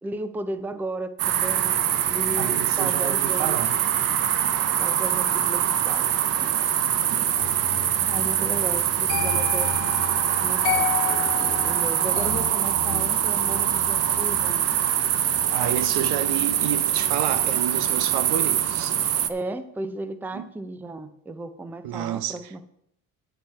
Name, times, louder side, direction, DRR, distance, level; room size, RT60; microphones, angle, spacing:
voice 1, 0.0-3.8 4.8-6.1 6.4-6.5 8.1-9.7 10.4-14.6 19.3-22.6, right 2 dB, 5° right, 0.5 m, -35 dB
sound 1, 1.2-19.3, right 10 dB, 40° right, 0.7 m, -23 dB
voice 2, 2.4-3.7 15.5-19.0 20.3-20.4 21.8-22.4, right 10 dB, 75° right, 1.0 m, -29 dB
sound 2, 7.4-18.3 18.6-19.0, left 13 dB, 75° left, 1.2 m, -34 dB
9.7 x 8.7 x 4.7 m
cardioid pair, 140°, 38 cm